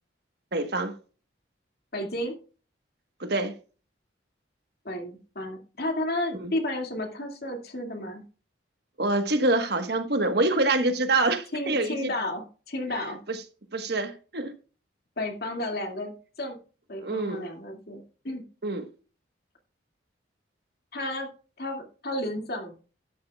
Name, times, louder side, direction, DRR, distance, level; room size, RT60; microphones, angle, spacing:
voice 1, 0.5-0.9 3.2-3.5 6.4-6.5 9.0-12.1 13.0-13.4 13.7-14.5 17.0-17.4 18.6-18.9, right 2 dB, 55° right, 1.3 m, -26 dB
voice 2, 1.9-2.4 4.8-8.2 11.5-13.2 15.2-16.6 16.9-18.4 20.9-21.3 21.6-22.7, left 1 dB, 55° left, 2.3 m, -32 dB
12.0 x 10.5 x 2.4 m
head